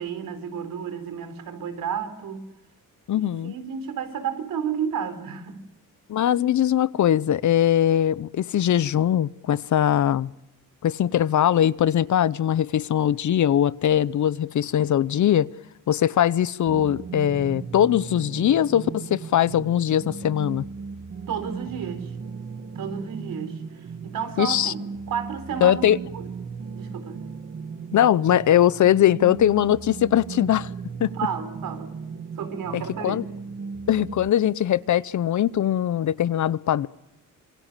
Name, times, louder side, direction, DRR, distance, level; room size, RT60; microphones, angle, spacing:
voice 1, 0.0-2.5 3.1-5.6 21.3-22.1 22.7-24.8 25.1-26.3 26.7-27.2 31.1-32.0 32.4-33.2, right 7 dB, 80° right, 4.0 m, -32 dB
voice 2, 3.1-3.5 6.1-10.3 10.8-15.5 15.9-20.6 24.4-24.7 25.6-26.0 27.9-30.7 31.0-31.1 32.7-33.2 33.9-36.9, left 10 dB, 60° left, 0.8 m, -21 dB
sound 1, 16.7-34.3, right 5 dB, 40° right, 1.4 m, -37 dB
26.5 x 22.5 x 7.4 m
cardioid pair, 120°, 33 cm